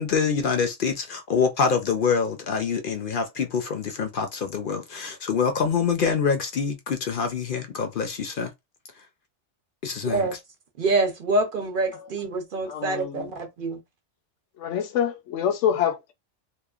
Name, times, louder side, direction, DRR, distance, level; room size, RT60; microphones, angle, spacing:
voice 1, 0.0-8.5 9.8-10.3, left 6 dB, 60° left, 0.6 m, -25 dB
voice 2, 10.0-10.3 10.8-13.8, right 2 dB, 55° right, 0.7 m, -26 dB
voice 3, 12.7-13.3 14.6-16.1, left 9 dB, 85° left, 1.0 m, -26 dB
2.9 x 2.2 x 2.4 m
omnidirectional pair, 1.2 m